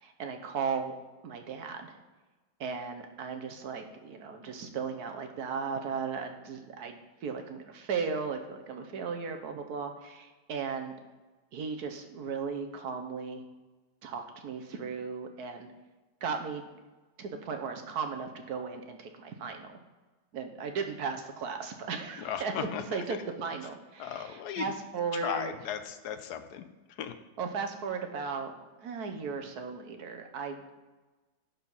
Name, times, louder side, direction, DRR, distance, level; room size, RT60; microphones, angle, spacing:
voice 1, 0.0-1.0 1.2-2.0 2.6-10.9 11.5-13.4 14.0-15.7 16.2-16.7 17.2-19.8 20.3-22.5 22.9-25.5 27.4-28.5 28.8-30.6, right 5 dB, 65° right, 5 dB, 1.4 m, -36 dB
voice 2, 22.2-23.0 24.0-24.7 25.2-26.7 27.0-27.2, left 8 dB, 75° left, 10 dB, 1.1 m, -36 dB
11.0 x 4.5 x 5.5 m, 1.2 s
omnidirectional pair, 1.9 m